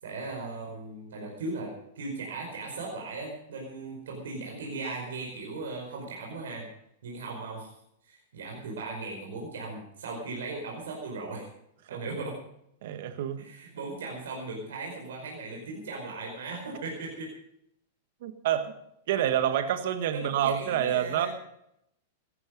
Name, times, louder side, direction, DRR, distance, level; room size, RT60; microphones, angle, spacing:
voice 1, 0.0-6.7 7.0-7.7 8.0-11.5 11.9-12.4 13.4-17.3 20.1-21.3, right 3 dB, 85° right, 0 dB, 5.1 m, -38 dB
voice 2, 12.8-13.4 18.2-18.7 19.1-21.3, right 10 dB, 65° right, 9 dB, 1.6 m, -27 dB
16.5 x 13.5 x 5.4 m, 0.76 s
hypercardioid pair, 130°, 0 cm